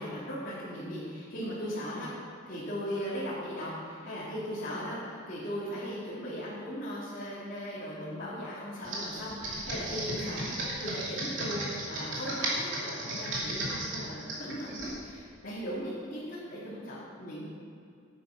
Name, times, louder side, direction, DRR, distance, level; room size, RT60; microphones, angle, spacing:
voice 1, 0.0-2.1 2.4-17.4, equal, 50° left, -11 dB, 2.9 m, -38 dB
Computer keyboard, 8.8-15.0, right 1 dB, 75° right, 2.7 m, -35 dB
9.9 x 9.2 x 5.9 m, 2.4 s
head